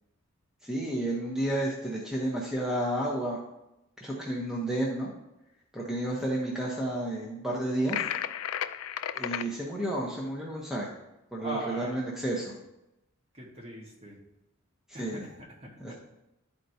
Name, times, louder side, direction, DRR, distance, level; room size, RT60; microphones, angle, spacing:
voice 1, 0.6-3.4 4.0-5.1 5.7-8.1 9.1-10.9 11.3-12.5 14.9-15.3 15.8-15.9, right 1 dB, ahead, -4 dB, 0.9 m, -31 dB
sound 1, 7.9-9.5, left 10 dB, 75° left, 0.3 m, -33 dB
voice 2, 11.4-12.0 13.3-14.2 14.9-15.9, right 1 dB, 30° right, -2 dB, 1.4 m, -40 dB
11.5 x 4.5 x 2.7 m, 0.91 s
head